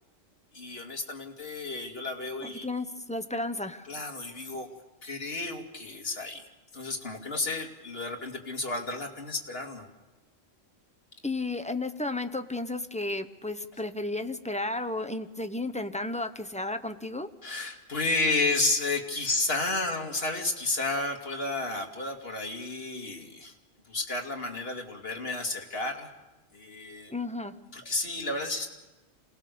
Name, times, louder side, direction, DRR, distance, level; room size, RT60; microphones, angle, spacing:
voice 1, 0.5-2.7 3.8-4.7 5.0-9.9 17.4-23.5 23.8-26.1 26.5-27.1 27.7-28.7, left 2 dB, 50° left, 2 dB, 2.6 m, -32 dB
voice 2, 2.4-3.9 11.2-17.3 27.1-27.5, left 2 dB, 5° left, 7 dB, 0.7 m, -33 dB
27.0 x 19.0 x 6.9 m, 1.1 s
omnidirectional pair, 1.3 m